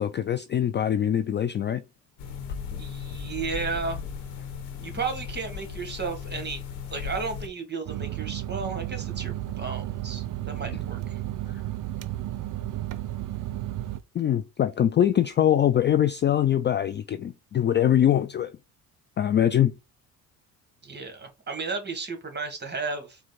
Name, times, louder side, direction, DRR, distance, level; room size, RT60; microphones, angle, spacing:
voice 1, 0.0-1.8 11.5-11.6 14.1-18.5 19.2-19.7, left 10 dB, 30° left, 0.3 m, -23 dB
sound 1, 2.2-7.5, left 6 dB, 85° left, 1.1 m, -36 dB
voice 2, 2.8-4.0 4.8-6.6 6.9-11.2 20.8-23.2, right 4 dB, 25° right, 1.6 m, -33 dB
sound 2, 7.9-14.0, right 14 dB, 50° right, 0.6 m, -33 dB
4.5 x 2.2 x 4.1 m
supercardioid pair, 75°, 39 cm